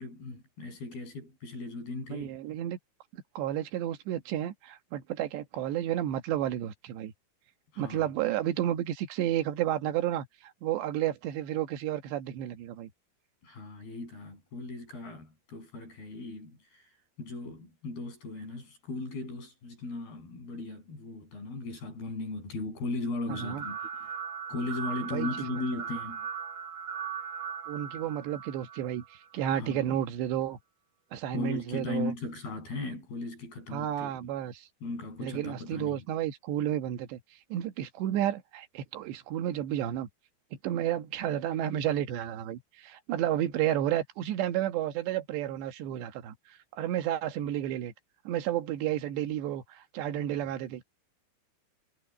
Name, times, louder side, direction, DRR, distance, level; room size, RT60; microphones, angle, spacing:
voice 1, 0.0-2.4 7.7-8.1 13.4-16.9 17.2-24.1 24.5-26.3 29.5-30.0 31.3-34.2 34.8-36.0, left 3 dB, 60° left, 9.7 m, -37 dB
voice 2, 2.1-2.8 3.1-7.1 7.8-12.9 23.3-23.6 25.1-25.6 27.7-30.6 31.1-32.1 33.7-34.7 35.2-37.2 37.5-40.1 40.6-46.4 46.7-47.9 48.3-50.8, right 12 dB, 90° right, 3.7 m, -31 dB
sound 1, 23.3-29.4, right 7 dB, 50° right, 2.6 m, -39 dB
omnidirectional pair, 4.8 m